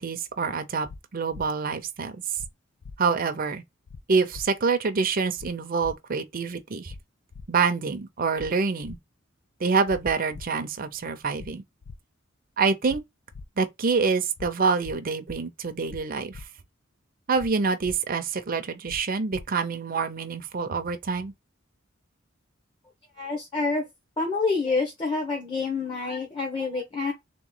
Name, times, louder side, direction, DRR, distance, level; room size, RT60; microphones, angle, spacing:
voice 1, 0.0-2.4 3.0-3.6 4.1-6.9 7.5-9.0 9.6-11.6 12.6-13.0 13.6-16.4 17.3-21.3, right 4 dB, 45° right, 0.6 m, -26 dB
sound 1, 0.9-1.0 1.3-1.4 2.4-2.5 2.8-3.0 3.9-4.0 4.3-4.5 5.4-5.5 5.8-5.9 6.9-7.0 7.3-7.5 8.4-8.5 8.8-9.0 9.9-10.0 10.3-10.5 11.4-11.5 11.8-12.0 12.9-13.0 13.3-13.4 14.4-14.5 14.8-15.0 15.9-16.0 16.3-16.4 17.4-17.5 17.8-18.0 18.9-19.0 19.3-19.4, left 4 dB, 80° left, 0.5 m, -41 dB
voice 2, 23.2-23.8 24.2-27.1, left 4 dB, 25° left, 1.0 m, -27 dB
3.5 x 3.0 x 3.8 m
head